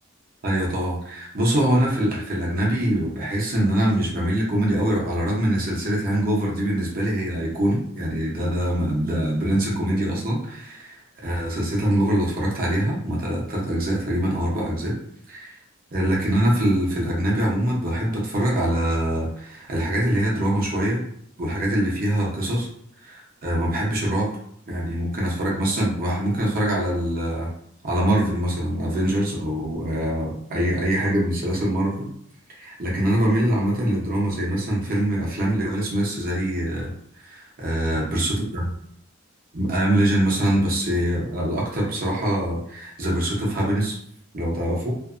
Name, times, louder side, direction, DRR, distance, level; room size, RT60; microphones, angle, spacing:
voice 1, 0.4-14.9 15.3-15.5 15.9-21.1 21.4-22.7 23.0-24.3 24.7-27.5 27.8-32.1 32.6-36.9 37.2-38.3 39.5-43.9 44.3-44.9, right 1 dB, 45° right, -3 dB, 0.8 m, -23 dB
2.6 x 2.2 x 2.4 m, 0.68 s
head